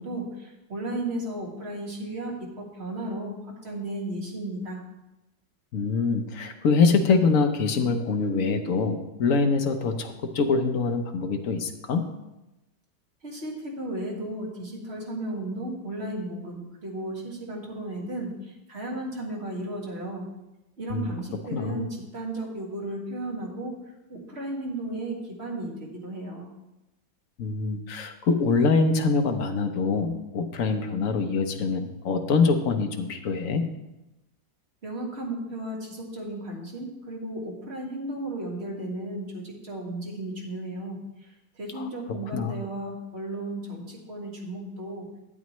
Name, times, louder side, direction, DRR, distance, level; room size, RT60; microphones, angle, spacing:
voice 1, 0.0-4.8 13.2-20.3 20.8-23.8 24.1-26.5 34.8-41.0 41.6-45.1, right 1 dB, 35° right, -2 dB, 2.2 m, -34 dB
voice 2, 5.7-12.1 20.9-21.1 21.5-21.8 27.4-33.6 41.8-42.6, left 4 dB, 55° left, 6 dB, 1.1 m, -24 dB
12.5 x 8.4 x 3.1 m, 0.97 s
omnidirectional pair, 1.9 m